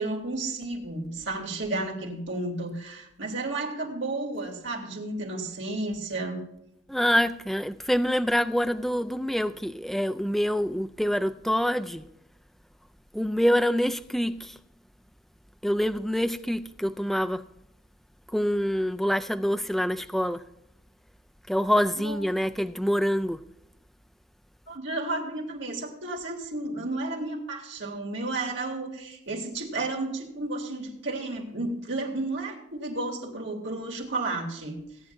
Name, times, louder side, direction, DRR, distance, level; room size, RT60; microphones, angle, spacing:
voice 1, 0.0-6.4 22.0-22.2 24.7-34.8, right 2 dB, 70° right, 3.0 m, -32 dB
voice 2, 6.9-12.0 13.1-14.6 15.6-17.4 18.3-20.4 21.5-23.4, equal, ahead, 0.4 m, -26 dB
18.0 x 9.7 x 2.6 m
head